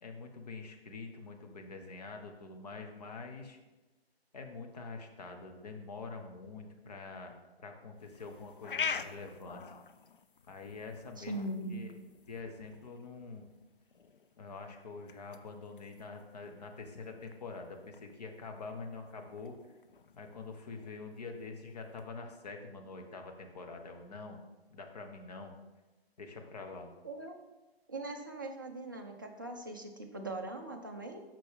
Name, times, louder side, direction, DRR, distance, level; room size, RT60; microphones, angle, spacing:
voice 1, 0.0-3.6 4.3-9.7 10.5-11.3 11.7-12.0 12.3-13.5 14.4-19.6 20.2-24.4 24.7-25.5 26.2-26.9, left 4 dB, 40° left, 3 dB, 0.9 m, -45 dB
sound 1, 8.0-22.1, left 6 dB, 55° left, 0.4 m, -46 dB
voice 2, 11.2-11.8 27.0-27.3 27.9-31.2, right 2 dB, 20° right, 2 dB, 0.4 m, -40 dB
6.4 x 6.0 x 3.6 m, 1.1 s
figure-of-eight pair, 140°, 32 cm